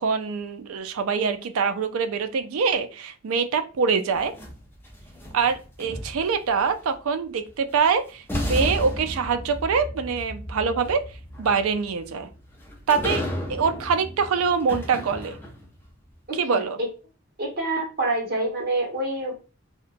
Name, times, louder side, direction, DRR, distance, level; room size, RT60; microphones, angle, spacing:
voice 1, 0.0-4.3 5.3-11.0 11.4-12.3 12.9-13.2 13.5-15.4 16.3-16.8, right 5 dB, 85° right, 9 dB, 0.4 m, -24 dB
sound 1, 4.1-6.5 7.7-7.8 8.3-15.8, equal, 10° left, 0.5 m, -33 dB
voice 2, 16.3-16.6 17.4-19.4, right 2 dB, 50° right, -1 dB, 1.0 m, -27 dB
2.8 x 2.1 x 2.5 m, 0.33 s
head